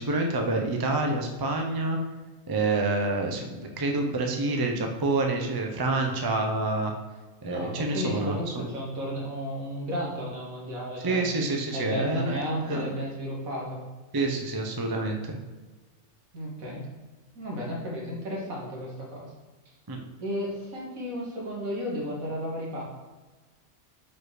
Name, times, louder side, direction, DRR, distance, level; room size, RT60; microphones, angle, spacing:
voice 1, 0.0-2.0 2.5-6.9 7.4-8.7 11.0-12.4 12.7-12.9 14.1-15.4 19.9-20.0, right 2 dB, 30° right, 2 dB, 0.4 m, -27 dB
voice 2, 7.4-11.2 11.7-13.8 16.3-16.9 17.3-19.3 20.2-22.8, equal, 75° right, -3 dB, 2.0 m, -33 dB
4.8 x 4.3 x 4.9 m, 1.2 s
omnidirectional pair, 1.5 m